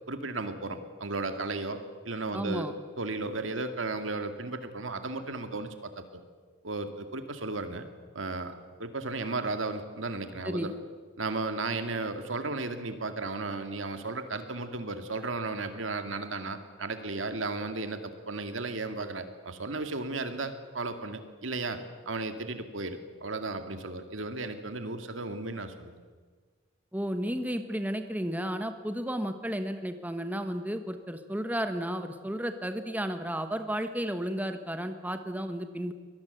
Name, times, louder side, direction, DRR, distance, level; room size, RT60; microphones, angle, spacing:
voice 1, 0.1-1.8 2.0-2.7 3.0-6.2 6.6-7.9 8.1-8.5 8.8-10.7 11.2-21.8 22.1-26.1, right 3 dB, 85° right, 8 dB, 2.2 m, -34 dB
voice 2, 2.3-2.7 10.4-10.7 26.9-35.9, equal, 10° right, 8 dB, 1.3 m, -33 dB
24.0 x 19.0 x 8.1 m, 1.5 s
head